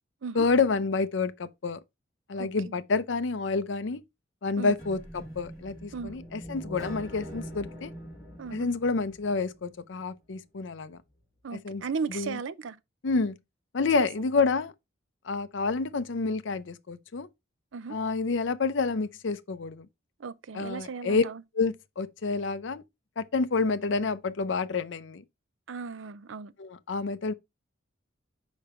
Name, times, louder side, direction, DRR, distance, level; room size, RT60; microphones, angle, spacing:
voice 1, 0.3-1.8 2.3-4.0 4.4-7.9 8.5-11.0 11.5-11.8 12.1-12.4 13.0-13.4 13.7-14.7 15.3-17.3 17.9-19.9 20.5-21.2 21.5-22.8 23.2-25.2 26.6-27.3, left 4 dB, 60° left, 0.5 m, -28 dB
voice 2, 2.4-2.7 4.6-4.7 5.9-6.1 8.4-8.7 11.4-12.8 14.0-14.1 17.7-18.0 20.2-21.4 25.7-26.5, right 5 dB, 65° right, 0.5 m, -36 dB
sound 1, 4.8-9.7, equal, 20° right, 3.3 m, -43 dB
5.2 x 4.9 x 4.3 m
head